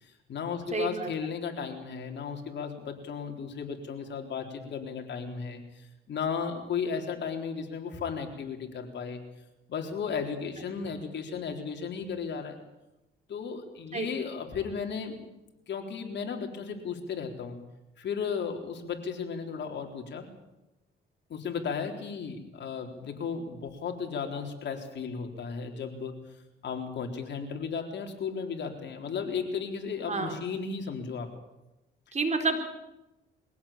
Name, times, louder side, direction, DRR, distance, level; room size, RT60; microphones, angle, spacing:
voice 1, 0.0-9.2 9.7-12.6 13.3-15.2 15.7-17.6 18.0-20.3 21.3-26.1 26.6-31.3, left 6 dB, 60° left, 4 dB, 4.0 m, -35 dB
voice 2, 0.7-1.1 10.8-10.9 13.9-14.1 30.0-30.4 32.1-32.6, right 3 dB, 35° right, 5 dB, 4.2 m, -29 dB
23.0 x 16.5 x 8.9 m, 0.96 s
cardioid pair, 90°, 20 cm